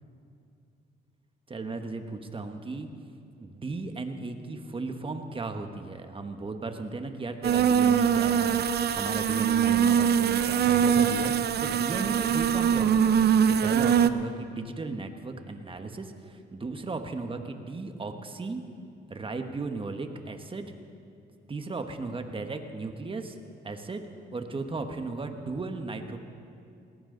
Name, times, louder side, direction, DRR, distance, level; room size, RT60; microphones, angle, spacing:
voice 1, 1.5-2.9 3.4-18.6 19.1-20.7 21.5-23.4 23.6-24.0 24.3-26.2, right 3 dB, 25° right, 6 dB, 1.3 m, -36 dB
sound 1, 7.4-14.1, right 8 dB, 55° right, 0.6 m, -23 dB
18.5 x 17.5 x 3.9 m, 2.5 s
cardioid pair, 90°, 20 cm